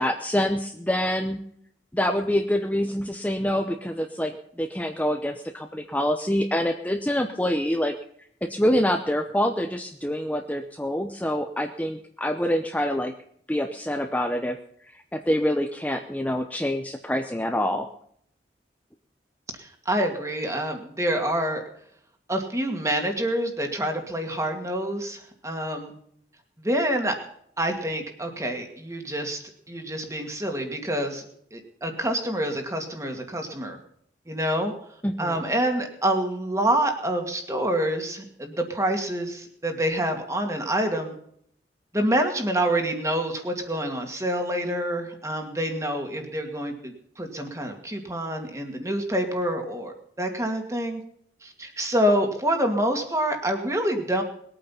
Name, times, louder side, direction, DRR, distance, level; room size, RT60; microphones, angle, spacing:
voice 1, 0.0-1.4 1.9-7.9 8.4-13.1 13.5-14.6 14.9-17.9 35.0-35.4, equal, 10° left, 4 dB, 0.8 m, -26 dB
voice 2, 19.5-21.6 22.3-25.9 26.6-27.2 27.6-31.2 31.5-33.8 34.3-34.7 35.2-41.1 41.9-51.0 51.4-54.2, right 1 dB, 15° right, 4 dB, 2.2 m, -27 dB
21.0 x 8.9 x 5.8 m, 0.67 s
head